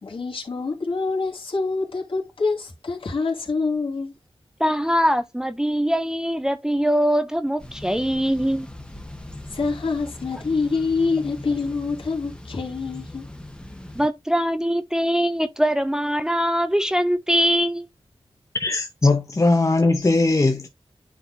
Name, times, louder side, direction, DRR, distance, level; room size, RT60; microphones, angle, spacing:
voice 1, 0.0-4.1 9.5-13.3, left 4 dB, 65° left, 2.5 m, -26 dB
voice 2, 4.6-8.7 13.9-17.9, equal, 5° right, 0.5 m, -22 dB
Thunder / Bicycle, 7.6-14.1, left 1 dB, 10° left, 1.2 m, -40 dB
voice 3, 18.6-20.7, left 2 dB, 30° left, 0.9 m, -19 dB
9.8 x 4.1 x 2.7 m
wide cardioid pair, 85°, 10 cm